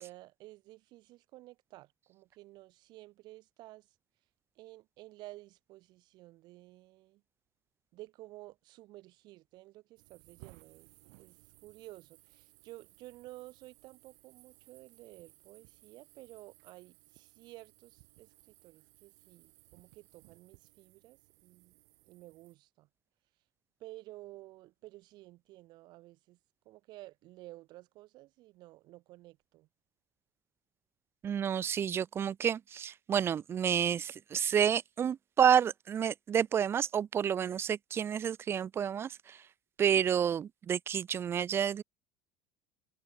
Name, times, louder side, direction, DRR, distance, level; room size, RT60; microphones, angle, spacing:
voice 1, 0.0-4.0 4.6-7.2 7.9-10.9 11.2-18.3 18.6-21.8 22.0-22.9 23.8-26.4 26.6-29.7, right 18 dB, 55° right, 5.7 m, -53 dB
sound 1, 10.0-22.5, right 29 dB, 80° right, 5.3 m, -61 dB
voice 2, 31.2-39.4 39.8-41.8, right 8 dB, 30° right, 0.7 m, -29 dB
cardioid pair, 140°, 9 cm